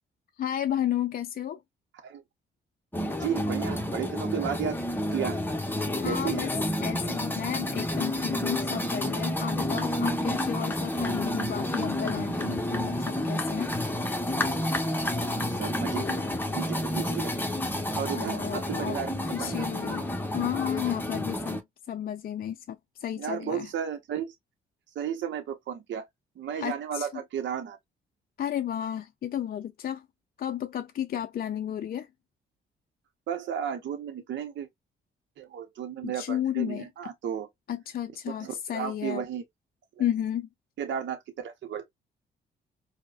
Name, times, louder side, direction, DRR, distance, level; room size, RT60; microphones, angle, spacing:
voice 1, 0.4-1.6 6.0-6.5 6.8-13.7 18.1-20.1 20.3-21.6 21.9-23.7 26.6-27.1 28.4-30.1 30.4-32.1 36.0-36.9 37.7-39.3 40.0-40.5, left 10 dB, 45° left, 0.4 m, -32 dB
sound 1, 2.9-21.6, left 1 dB, 10° left, 0.9 m, -30 dB
voice 2, 3.2-4.8 5.1-5.4 6.0-6.5 15.3-17.5 17.9-19.7 23.2-24.4 24.9-26.1 26.4-27.8 33.3-34.7 35.4-37.5 38.3-39.4 40.8-41.8, right 8 dB, 65° right, 0.8 m, -34 dB
4.6 x 2.1 x 2.4 m
supercardioid pair, 60°, 20 cm